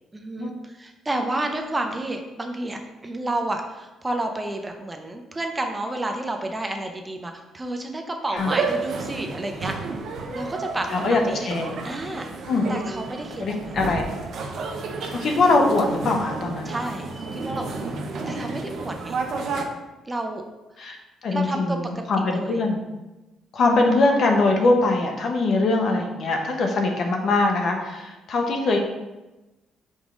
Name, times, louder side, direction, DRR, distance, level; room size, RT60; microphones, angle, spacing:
voice 1, 0.1-9.7 10.3-11.5 11.8-12.3 12.7-13.8 16.6-17.9 18.3-19.2 20.0-20.4 21.3-22.6, right 2 dB, 15° right, 4 dB, 0.6 m, -30 dB
sound 1, 8.4-19.6, right 4 dB, 60° right, 0.7 m, -31 dB
voice 2, 10.9-11.8 12.5-12.8 13.4-14.0 15.1-16.7 20.8-22.9 23.5-28.8, left 2 dB, 55° left, 2 dB, 1.0 m, -22 dB
5.3 x 3.7 x 5.0 m, 1.1 s
cardioid pair, 125°, 0 cm